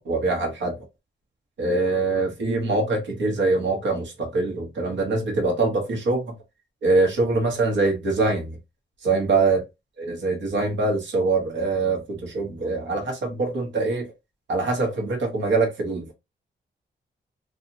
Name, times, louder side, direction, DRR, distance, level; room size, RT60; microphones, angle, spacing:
voice 1, 0.1-0.8 1.6-6.4 6.8-8.6 9.0-9.6 10.0-14.1 14.5-16.1, right 3 dB, 75° right, 1.0 m, -23 dB
2.8 x 2.3 x 2.6 m
wide cardioid pair, 130°, 19 cm